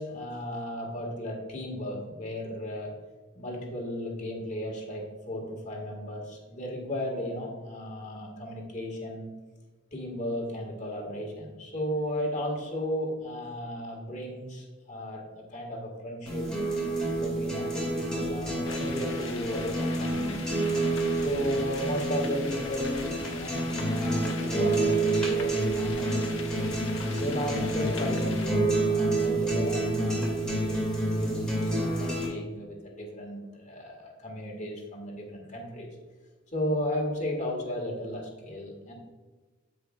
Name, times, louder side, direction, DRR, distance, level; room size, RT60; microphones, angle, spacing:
voice 1, 0.0-2.9 3.4-9.3 9.9-16.5 17.1-20.7 21.2-26.7 27.2-35.9 36.5-38.9, equal, 40° left, -1 dB, 1.8 m, -35 dB
sound 1, 16.3-32.3, right 2 dB, 5° left, 2.4 m, -28 dB
sound 2, 18.6-28.5, left 5 dB, 90° left, 1.1 m, -42 dB
14.5 x 5.2 x 2.4 m, 1.3 s
head